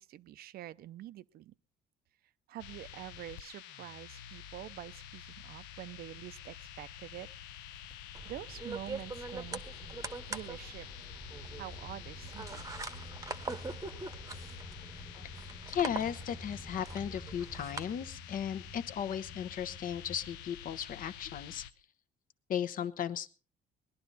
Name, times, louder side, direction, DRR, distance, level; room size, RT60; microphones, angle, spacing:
voice 1, 0.0-1.5 2.5-7.3 8.2-9.6 10.3-10.9 11.6-12.6, right 13 dB, 65° right, 0.6 m, -46 dB
sound 1, 2.6-21.7, left 10 dB, 85° left, 0.8 m, -48 dB
sound 2, 7.1-7.2 7.7-8.8 9.2-10.2 10.7-20.4, left 1 dB, 15° left, 1.6 m, -52 dB
sound 3, 8.1-17.8, right 3 dB, 20° right, 0.9 m, -43 dB
voice 2, 15.1-21.6 22.5-23.3, left 9 dB, 55° left, 1.0 m, -36 dB
20.0 x 11.5 x 4.1 m
cardioid pair, 110°, 17 cm